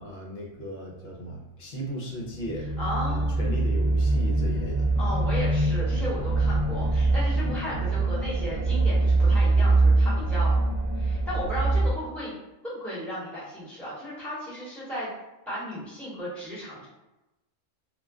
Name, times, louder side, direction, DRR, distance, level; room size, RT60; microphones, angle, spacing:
voice 1, 0.0-2.7 3.1-4.9, right 1 dB, 60° left, -2 dB, 0.9 m, -36 dB
sound 1, 2.4-11.9, right 2 dB, 45° right, 0.3 m, -23 dB
voice 2, 2.8-3.6 5.0-10.6 10.9-12.3 12.6-15.1 15.5-16.9, equal, ahead, -9 dB, 1.0 m, -35 dB
2.4 x 2.2 x 3.5 m, 0.98 s
omnidirectional pair, 1.3 m